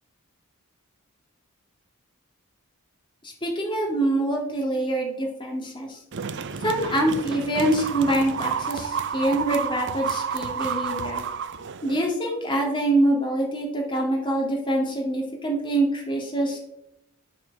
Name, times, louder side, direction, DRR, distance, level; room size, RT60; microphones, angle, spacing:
voice 1, 3.2-6.0 6.6-11.3 11.8-16.6, right 1 dB, 20° left, 0 dB, 2.2 m, -25 dB
sound 1, 6.1-12.1, right 6 dB, 55° right, 0.5 m, -30 dB
8.5 x 4.4 x 6.8 m, 0.85 s
head